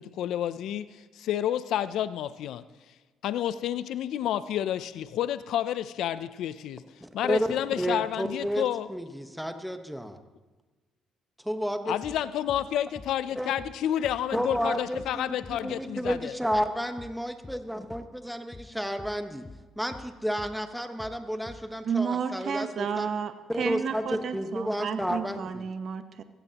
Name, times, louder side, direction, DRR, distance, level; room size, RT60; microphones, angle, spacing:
voice 1, 0.0-2.6 3.2-6.8 7.1-8.9 11.8-16.3, left 11 dB, 75° left, 15 dB, 0.4 m, -30 dB
voice 2, 7.0-10.2 11.4-11.9 13.3-13.5 14.3-19.5 19.8-23.1 23.5-25.6, equal, ahead, 7 dB, 1.1 m, -31 dB
sound 1, 12.0-12.2 12.5-12.7 13.0-13.2 13.6-13.8 14.0-14.2 14.5-14.7 15.0-15.2 15.4-15.6 16.0-16.2 16.5-16.7 17.0-17.2 17.4-17.6 17.9-18.1 18.5-18.7 19.0-19.2 19.5-19.7 19.9-20.1 20.4-20.6 21.0-21.2 21.5-21.7, left 3 dB, 20° left, 0.6 m, -46 dB
voice 3, 21.8-26.2, right 6 dB, 55° right, 9 dB, 0.9 m, -31 dB
16.0 x 15.0 x 2.9 m, 1.3 s
supercardioid pair, 80°, 0 cm